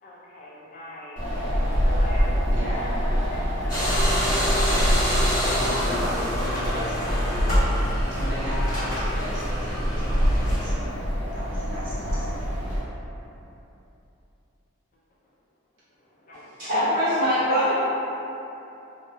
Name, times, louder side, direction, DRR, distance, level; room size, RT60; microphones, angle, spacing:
voice 1, 0.0-2.9 3.3-4.3 6.8-6.9 16.3-16.7, left 1 dB, 40° left, -7 dB, 0.3 m, -40 dB
Wind, 1.2-12.8, equal, 60° left, 0.7 m, -25 dB
voice 2, 2.5-2.8 5.5-7.7 8.1-12.5, equal, 55° right, -10 dB, 0.6 m, -36 dB
sound 1, 3.7-10.7, equal, 15° left, 1.0 m, -28 dB
voice 3, 16.6-17.7, equal, 90° right, -12 dB, 1.3 m, -22 dB
2.6 x 2.1 x 2.6 m, 2.9 s
head